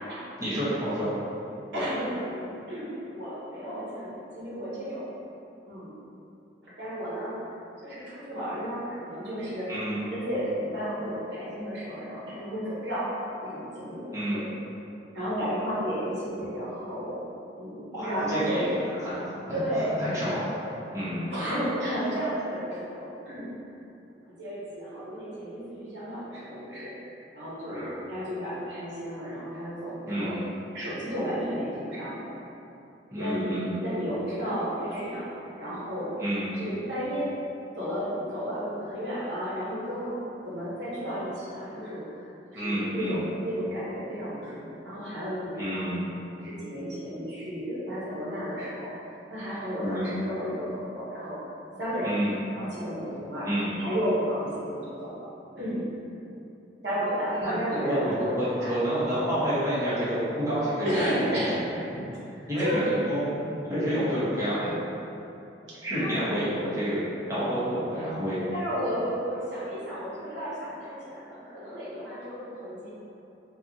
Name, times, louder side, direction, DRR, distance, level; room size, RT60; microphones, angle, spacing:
voice 1, 0.4-1.1 9.7-10.0 14.1-14.4 17.9-18.7 19.0-19.6 19.9-20.5 20.9-21.3 27.7-28.0 30.1-30.4 33.1-33.7 36.2-36.5 42.5-43.2 45.6-46.0 49.8-50.1 52.0-52.4 53.4-53.7 57.4-60.1 60.4-61.3 61.7-62.0 62.5-63.4 63.7-64.7 65.8-67.0 67.3-68.4, equal, 20° right, -11 dB, 1.1 m, -29 dB
voice 2, 1.7-5.1 5.7-6.0 6.6-7.3 7.8-9.7 10.1-13.1 13.4-14.5 15.1-17.2 17.6-18.9 19.5-20.0 21.3-23.5 24.4-27.0 27.3-30.4 30.7-32.3 33.2-36.2 36.5-37.3 37.7-40.2 40.4-42.1 42.5-45.9 46.4-48.9 49.3-51.4 51.8-52.2 52.5-53.5 53.8-55.1 55.5-55.9 56.8-58.8 60.8-61.6 62.3-63.0 65.7-66.8 68.5-72.9, equal, 75° right, -9 dB, 0.9 m, -33 dB
4.4 x 2.4 x 2.7 m, 2.9 s
head